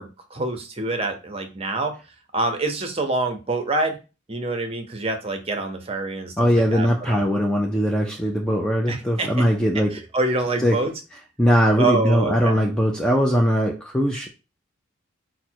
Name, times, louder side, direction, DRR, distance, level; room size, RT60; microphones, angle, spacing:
voice 1, 0.0-1.9 2.3-4.0 4.3-7.3 8.9-9.3 9.9-10.9 11.8-12.6, right 2 dB, 30° right, 0.7 m, -26 dB
voice 2, 6.4-10.0 10.6-10.8 11.4-14.3, equal, 5° left, 0.4 m, -20 dB
5.0 x 2.1 x 4.4 m
head